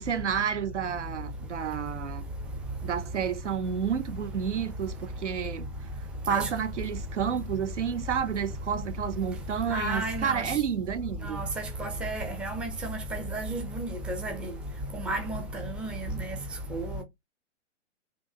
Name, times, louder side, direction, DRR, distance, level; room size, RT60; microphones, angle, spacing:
voice 1, 0.0-2.2 2.8-5.7 6.3-11.4, right 7 dB, 70° right, 0.9 m, -30 dB
voice 2, 9.7-10.5 11.2-11.5 11.8-14.5 15.0-16.4 16.7-17.0, right 1 dB, 5° right, 0.5 m, -32 dB
4.5 x 2.9 x 2.6 m
figure-of-eight pair, 115°, 37 cm